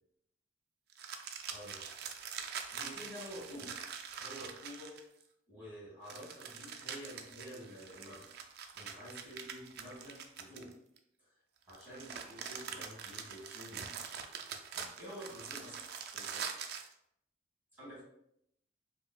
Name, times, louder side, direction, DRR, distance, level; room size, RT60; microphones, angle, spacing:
sound 1, 0.9-5.2 6.1-11.0 11.7-16.9, right 7 dB, 55° right, 0.3 m, -44 dB
voice 1, 1.5-1.9 2.7-3.8 4.2-5.0 5.5-8.3 8.7-10.7 11.2-11.3 11.7-13.9 14.7-16.5 17.7-18.0, equal, 10° right, -8 dB, 1.4 m, -49 dB
5.0 x 2.3 x 2.2 m, 0.75 s
head